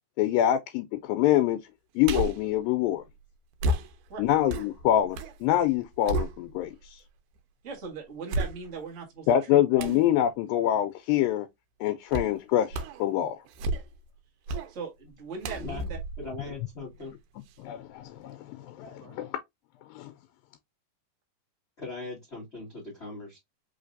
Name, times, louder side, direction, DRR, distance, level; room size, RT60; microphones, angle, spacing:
voice 1, 0.2-1.6 2.0-3.0 4.2-7.0 9.3-11.5 11.8-13.4 17.6-19.3 19.9-20.1, left 12 dB, 85° left, 2.2 m, -25 dB
sound 1, 2.0-2.5 3.6-5.4 5.7-6.8 7.4-7.5 8.3-9.0 9.8-10.1 12.1-12.4 12.7-13.1 13.5-14.1 14.5-14.7 15.4-17.1 17.5-17.6, right 1 dB, 85° right, 2.2 m, -32 dB
voice 2, 7.6-9.9 14.7-16.0 19.0-19.2, right 5 dB, 55° right, 0.8 m, -40 dB
voice 3, 16.2-17.1 21.8-23.4, left 3 dB, 35° left, 1.1 m, -39 dB
5.1 x 3.2 x 2.5 m
omnidirectional pair, 4.0 m